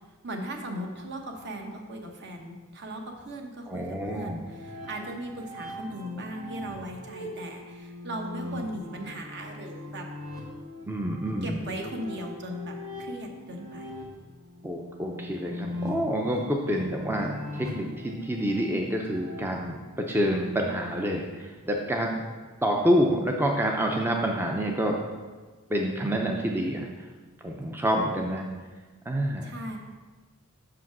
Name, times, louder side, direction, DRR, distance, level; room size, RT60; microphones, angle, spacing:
voice 1, 0.2-3.9 4.1-10.1 11.4-13.9 29.4-29.8, right 1 dB, 50° right, 2 dB, 1.0 m, -38 dB
voice 2, 3.7-4.4 10.9-11.6 14.6-22.2 22.6-25.0 25.7-26.9 27.4-28.4 29.1-29.5, equal, 10° right, 1 dB, 0.5 m, -27 dB
sound 1, 4.4-19.4, left 2 dB, 85° right, 1.5 m, -40 dB
5.9 x 5.0 x 6.0 m, 1.3 s
head